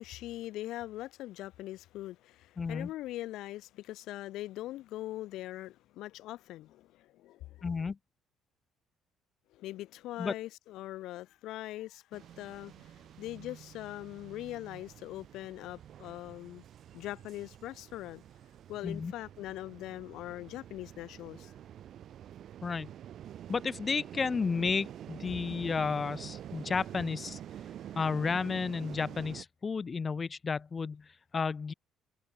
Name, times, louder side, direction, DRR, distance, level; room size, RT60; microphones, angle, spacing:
voice 1, 0.0-7.7 9.5-12.9 13.2-16.6 16.9-18.2 18.7-21.5, left 15 dB, 75° left, 1.6 m, -42 dB
voice 2, 2.6-2.9 7.6-8.0 10.2-10.3 18.8-19.1 22.6-22.9 23.5-27.4 28.0-31.0 31.3-31.7, left 5 dB, 35° left, 0.5 m, -32 dB
sound 1, 12.1-29.4, right 10 dB, 60° right, 1.5 m, -47 dB
supercardioid pair, 80°, 0 cm